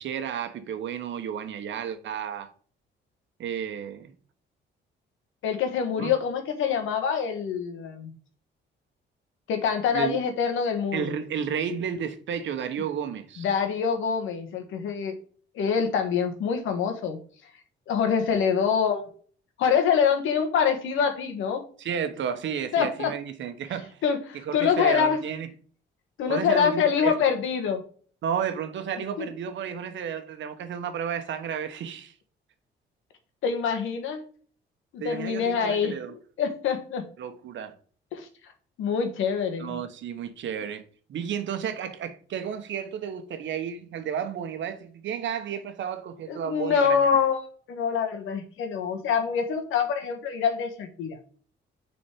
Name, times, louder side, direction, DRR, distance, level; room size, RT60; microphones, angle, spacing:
voice 1, 0.0-2.5 3.4-4.1 6.0-6.1 9.9-10.2 10.9-13.5 21.8-24.0 24.5-25.5 26.3-27.1 28.2-32.1 35.0-36.1 37.2-37.7 39.6-40.8 41.1-47.1, right 8 dB, 70° right, 1.1 m, -32 dB
voice 2, 5.4-8.1 9.5-11.1 13.4-15.1 15.5-17.2 17.9-19.0 19.6-21.6 22.7-23.1 24.0-25.2 26.2-27.8 29.2-29.3 33.4-34.2 34.9-37.0 38.1-38.3 38.8-39.8 46.3-47.4 47.7-51.2, left 7 dB, 85° left, 1.5 m, -25 dB
6.7 x 4.2 x 4.5 m
cardioid pair, 90°, 20 cm